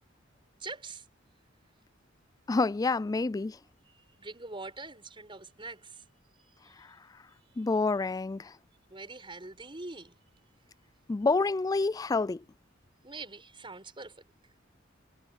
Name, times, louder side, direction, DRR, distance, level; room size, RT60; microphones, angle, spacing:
voice 1, 0.6-1.0 4.2-6.0 6.4-6.5 8.9-10.1 13.0-14.1, right 3 dB, 25° right, 5.6 m, -43 dB
voice 2, 2.5-3.6 6.8-6.9 7.6-8.5 11.1-12.4, left 3 dB, 20° left, 0.3 m, -28 dB
head